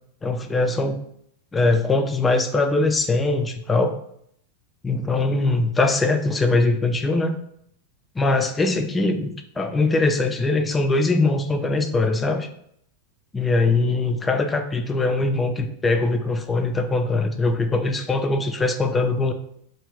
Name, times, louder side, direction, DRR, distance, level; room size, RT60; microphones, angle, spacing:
voice 1, 0.2-1.0 1.5-3.9 4.8-7.4 8.2-12.5 13.3-19.3, left 3 dB, 15° left, 7 dB, 0.3 m, -21 dB
2.4 x 2.3 x 3.2 m, 0.70 s
figure-of-eight pair, 90°, 0 cm